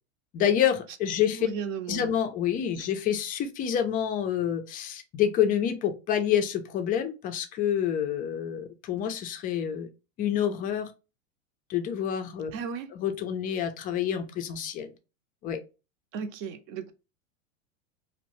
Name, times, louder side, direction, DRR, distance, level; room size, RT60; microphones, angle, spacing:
voice 1, 0.3-1.5 1.9-9.9 10.2-10.9 11.7-12.5 13.0-14.9 15.4-15.6, left 9 dB, 25° left, 0.3 m, -28 dB
voice 2, 1.3-2.1 2.8-2.9 12.5-12.9 16.1-16.9, right 6 dB, 50° right, 0.6 m, -35 dB
2.6 x 2.1 x 2.9 m
supercardioid pair, 120°, 38 cm